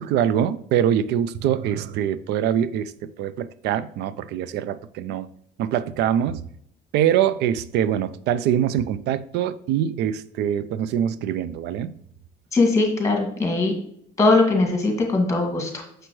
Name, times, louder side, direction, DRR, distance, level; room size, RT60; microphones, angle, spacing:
voice 1, 0.0-5.3 5.6-6.5 6.9-11.9, right 10 dB, 80° right, 0.5 m, -24 dB
voice 2, 12.5-13.7 14.2-15.8, left 3 dB, 20° left, 2.1 m, -20 dB
6.5 x 5.9 x 3.1 m
cardioid pair, 110°, 17 cm